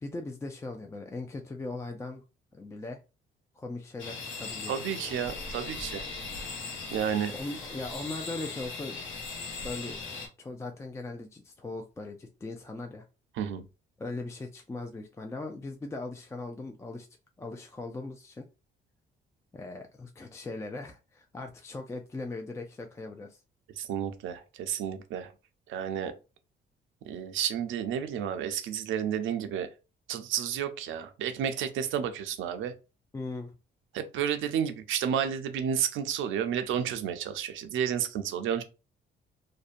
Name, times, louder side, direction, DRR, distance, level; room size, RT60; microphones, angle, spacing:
voice 1, 0.0-2.2 2.5-3.0 3.6-4.8 7.3-9.1 9.6-9.9 10.4-13.0 14.0-17.1 17.4-18.4 19.5-23.4 33.1-33.5, left 2 dB, 15° left, 0.3 m, -39 dB
sound 1, 4.0-10.3, left 4 dB, 75° left, 0.8 m, -39 dB
voice 2, 4.7-6.0 6.9-7.3 13.4-13.6 23.8-25.3 25.7-26.1 27.1-29.7 30.1-32.7 33.9-38.6, right 8 dB, 80° right, 0.5 m, -31 dB
2.6 x 2.1 x 2.5 m
cardioid pair, 90°, 20 cm